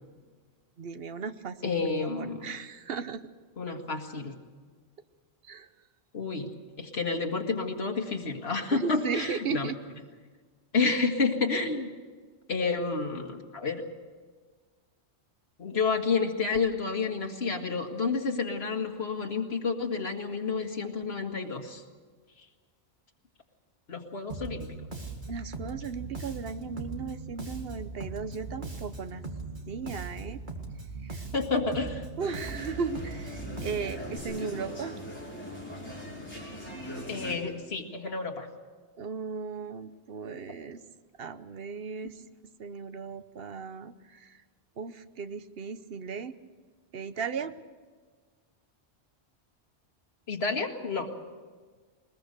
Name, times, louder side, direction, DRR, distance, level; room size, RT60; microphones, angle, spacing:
voice 1, 0.8-1.7 2.0-3.3 5.4-5.7 8.7-9.8 25.3-29.2 29.7-30.4 31.0-31.2 31.6-31.7 32.2-34.9 39.0-40.8 41.2-42.2 42.6-44.4 44.8-46.4 46.9-47.5, right 5 dB, 60° right, 12 dB, 1.1 m, -36 dB
voice 2, 1.6-2.5 3.6-4.4 6.1-6.5 6.8-9.7 10.7-11.9 12.5-13.8 15.6-21.8 23.9-24.7 31.3-32.1 37.1-38.5 50.3-51.1, left 4 dB, 65° left, 2 dB, 2.1 m, -30 dB
Bass guitar, 24.3-34.2, right 3 dB, 45° right, 2.1 m, -40 dB
sound 1, 32.2-37.4, equal, 10° left, 4.6 m, -40 dB
20.5 x 20.5 x 6.8 m, 1.5 s
omnidirectional pair, 1.1 m